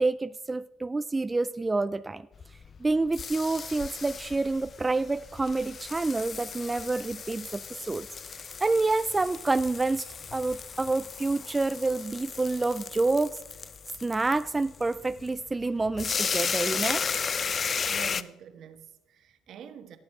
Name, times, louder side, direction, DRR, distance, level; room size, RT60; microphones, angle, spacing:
voice 1, 0.0-2.3 2.8-8.1 8.3-13.4 14.0-17.1, right 3 dB, 20° right, 0.3 m, -28 dB
sound 1, 2.3-18.2, left 6 dB, 40° left, 0.5 m, -35 dB
voice 2, 17.9-20.0, right 6 dB, 60° right, 1.3 m, -46 dB
18.0 x 7.4 x 4.7 m
supercardioid pair, 85°, 0 cm